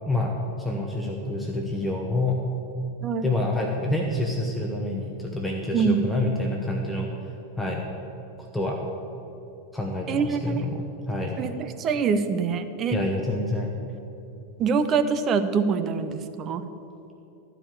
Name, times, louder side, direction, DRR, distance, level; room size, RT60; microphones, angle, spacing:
voice 1, 0.6-2.4 3.2-7.1 7.6-7.8 8.5-8.8 9.7-11.4 12.9-13.7, left 2 dB, 5° left, 0 dB, 1.0 m, -27 dB
voice 2, 5.7-6.1 10.1-10.6 11.4-13.0 14.6-16.6, right 5 dB, 30° right, 9 dB, 0.6 m, -25 dB
13.0 x 5.0 x 8.2 m, 2.8 s
figure-of-eight pair, 90°, 0 cm